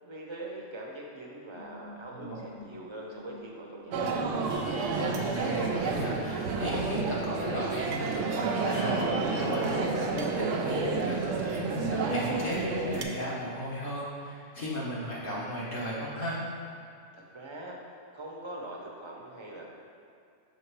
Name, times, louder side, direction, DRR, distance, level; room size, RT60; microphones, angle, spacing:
voice 1, 0.0-4.2 17.1-17.8 18.1-19.7, right 1 dB, 30° right, -2 dB, 0.7 m, -42 dB
sound 1, 1.5-7.0 7.2-11.1 11.4-12.6, left 2 dB, 75° left, 1.3 m, -48 dB
sound 2, 3.9-13.0, right 4 dB, 80° right, 0.9 m, -30 dB
voice 2, 4.8-16.4, equal, 50° left, -7 dB, 1.1 m, -35 dB
6.4 x 3.5 x 4.6 m, 2.3 s
omnidirectional pair, 1.3 m